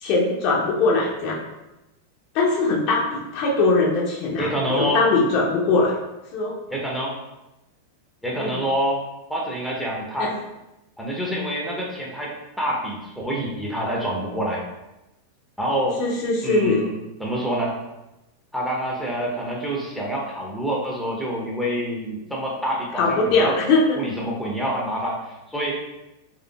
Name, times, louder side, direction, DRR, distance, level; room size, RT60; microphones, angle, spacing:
voice 1, 0.0-1.4 2.3-5.9 6.3-6.5 8.3-8.6 10.2-10.3 16.0-16.8 22.9-23.8, left 3 dB, 45° left, -2 dB, 0.6 m, -21 dB
voice 2, 4.4-5.0 6.7-7.2 8.2-9.0 9.3-10.3 11.0-14.6 15.6-16.0 16.4-16.9 17.2-17.8 18.5-23.5 23.9-25.2 25.5-25.7, equal, ahead, -3 dB, 0.7 m, -26 dB
3.7 x 3.2 x 2.3 m, 0.98 s
figure-of-eight pair, 90°, 0 cm